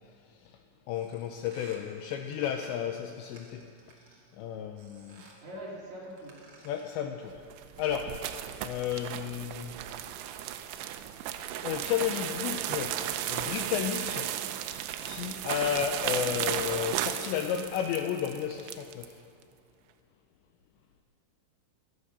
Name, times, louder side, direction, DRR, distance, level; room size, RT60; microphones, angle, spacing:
voice 1, 0.9-3.6 4.4-5.2 6.6-7.4 7.8-8.1 8.6-9.8 11.6-13.0 13.3-14.3 15.1-19.2, left 9 dB, 90° left, 5 dB, 2.6 m, -32 dB
sound 1, 0.9-4.4 4.8-5.5 6.0-7.0, right 3 dB, 65° right, 1.4 m, -56 dB
voice 2, 5.4-6.7, equal, 50° right, -5 dB, 2.7 m, -44 dB
sound 2, 7.4-19.1, right 11 dB, 80° right, 2.8 m, -35 dB
15.0 x 11.5 x 6.7 m, 2.3 s
omnidirectional pair, 5.7 m